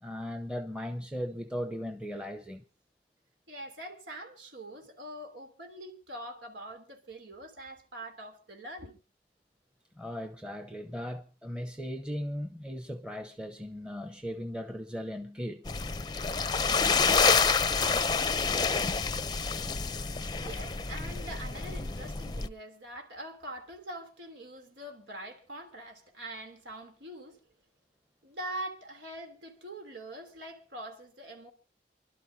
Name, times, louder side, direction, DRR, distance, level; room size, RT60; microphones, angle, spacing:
voice 1, 0.0-2.6 10.0-15.7 19.1-19.2, equal, 5° right, 0.9 m, -38 dB
voice 2, 3.5-9.0 20.3-27.4 28.2-31.5, right 1 dB, 85° right, 3.2 m, -43 dB
sound 1, 15.7-22.5, left 5 dB, 25° left, 0.6 m, -28 dB
29.0 x 12.0 x 2.8 m
head